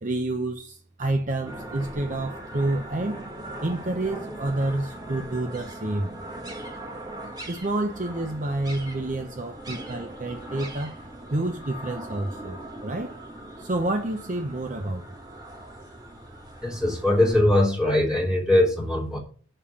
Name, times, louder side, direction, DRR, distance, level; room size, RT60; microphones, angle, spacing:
voice 1, 0.0-3.2 3.6-6.1 7.5-11.0 11.3-13.2 13.6-15.2, right 2 dB, 45° right, 0.8 m, -29 dB
sound 1, 1.4-17.4, right 1 dB, 20° right, 1.8 m, -40 dB
voice 2, 16.6-19.2, left 1 dB, 5° right, 3.5 m, -21 dB
6.8 x 5.5 x 7.1 m
head